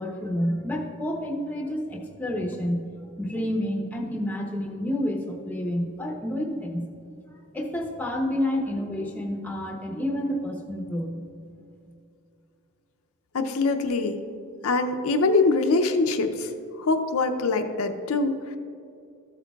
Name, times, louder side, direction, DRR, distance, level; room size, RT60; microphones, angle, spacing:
voice 1, 0.0-2.8 3.2-6.8 7.5-11.2, left 1 dB, 10° left, 1 dB, 0.7 m, -29 dB
voice 2, 13.3-14.2 14.6-16.5 16.8-18.6, left 3 dB, 80° left, 6 dB, 0.5 m, -23 dB
13.5 x 8.3 x 2.3 m, 2.5 s
head